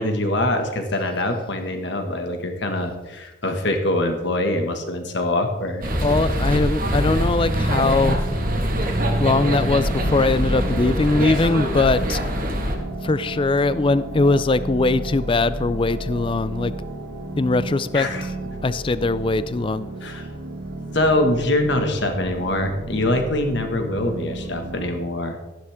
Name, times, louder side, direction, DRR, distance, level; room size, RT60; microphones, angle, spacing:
voice 1, 0.0-5.8 17.9-18.3 20.0-20.3 20.9-25.4, left 1 dB, 60° left, 5 dB, 1.7 m, -23 dB
sound 1, 5.8-12.8, equal, 45° right, 1.7 m, -23 dB
voice 2, 6.0-8.5 9.2-12.2 13.0-16.7 17.4-18.1 18.6-19.9, left 3 dB, 25° left, 15 dB, 0.4 m, -21 dB
sound 2, 7.3-24.9, right 2 dB, 90° right, 1.8 m, -33 dB
13.0 x 11.0 x 3.6 m, 1.1 s
head